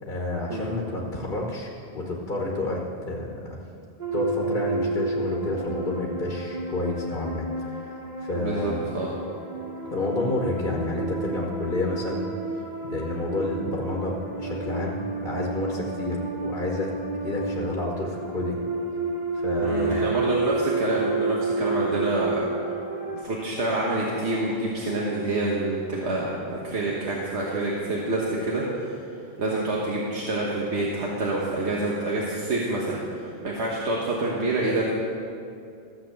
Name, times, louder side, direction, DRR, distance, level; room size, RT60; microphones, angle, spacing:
voice 1, 0.0-3.6 4.1-8.8 9.8-12.3 12.8-18.6 19.3-20.2, left 2 dB, 50° left, -2 dB, 1.4 m, -30 dB
sound 1, 4.0-23.2, right 3 dB, 45° right, 1.3 m, -31 dB
voice 2, 8.3-9.1 19.6-22.5 23.1-28.9 29.4-34.9, right 2 dB, 85° right, -4 dB, 1.6 m, -27 dB
14.5 x 7.5 x 7.1 m, 2.5 s
omnidirectional pair, 1.1 m